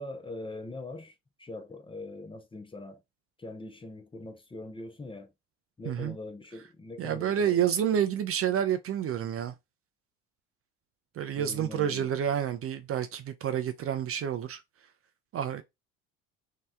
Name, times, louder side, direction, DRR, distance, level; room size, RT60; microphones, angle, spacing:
voice 1, 0.0-3.0 3.4-5.3 5.8-7.6 11.3-12.1, left 2 dB, 15° left, 0.5 m, -42 dB
voice 2, 7.0-9.5 11.2-14.6 15.3-15.6, right 9 dB, 40° right, 0.4 m, -29 dB
2.8 x 2.1 x 3.3 m
hypercardioid pair, 75°, 38 cm